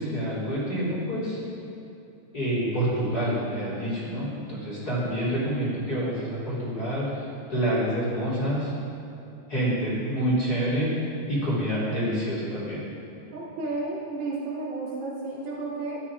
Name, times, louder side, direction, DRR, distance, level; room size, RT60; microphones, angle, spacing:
voice 1, 0.0-1.4 2.3-8.7 9.5-10.9 11.3-12.8, right 1 dB, 20° left, -9 dB, 4.1 m, -27 dB
voice 2, 13.3-16.0, right 3 dB, 60° right, -7 dB, 5.1 m, -32 dB
15.5 x 13.0 x 5.0 m, 2.9 s
omnidirectional pair, 4.9 m